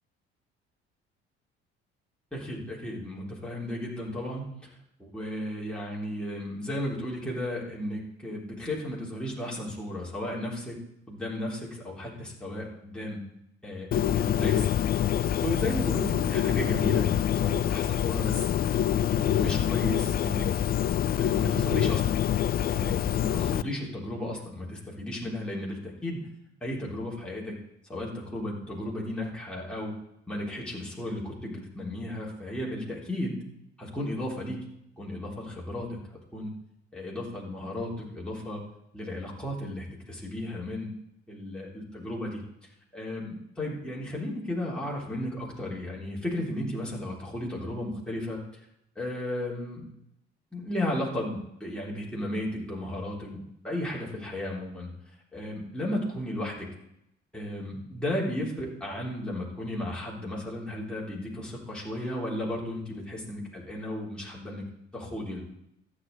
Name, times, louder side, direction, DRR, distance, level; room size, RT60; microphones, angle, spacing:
voice 1, 2.3-4.5 5.0-10.8 11.1-13.2 13.6-18.5 19.1-20.6 21.2-22.2 22.7-26.3 26.6-27.6 27.9-29.9 30.3-33.4 33.8-34.6 35.0-36.0 36.3-36.5 36.9-38.6 38.9-40.9 41.3-42.4 42.9-48.4 49.0-49.9 50.5-54.9 55.3-56.7 57.3-64.7 64.9-65.4, left 1 dB, 5° left, -5 dB, 3.6 m, -34 dB
Bird, 13.9-23.6, left 10 dB, 30° left, 0.4 m, -26 dB
14.5 x 8.2 x 4.1 m, 0.80 s
figure-of-eight pair, 50°, 32 cm